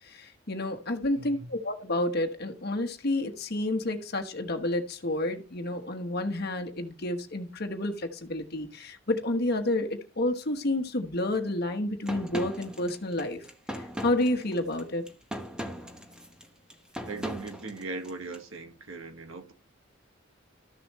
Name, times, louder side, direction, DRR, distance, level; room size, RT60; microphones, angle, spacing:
voice 1, 0.1-9.9 10.2-13.4 13.7-15.0, left 1 dB, 55° left, 1.2 m, -30 dB
voice 2, 1.1-1.5 17.1-19.5, right 3 dB, 90° right, 1.5 m, -39 dB
sound 1, 12.1-18.4, equal, 5° right, 1.2 m, -39 dB
13.5 x 6.9 x 3.1 m
head